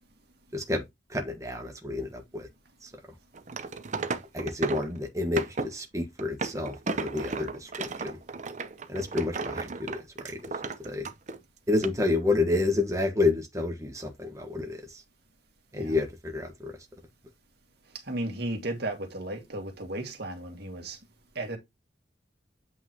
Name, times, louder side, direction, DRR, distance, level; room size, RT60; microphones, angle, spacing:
voice 1, 1.1-2.5 4.3-8.2 8.9-10.0 10.3-10.4 10.8-11.0 11.7-14.8 15.7-16.7, left 2 dB, 20° right, 1.5 m, -29 dB
sound 1, 3.3-5.0 5.4-5.7 6.2-11.4 11.8-11.9, right 4 dB, 40° right, 0.9 m, -34 dB
voice 2, 18.1-21.0 21.4-21.6, right 1 dB, 60° right, 2.1 m, -34 dB
8.3 x 5.5 x 3.0 m
head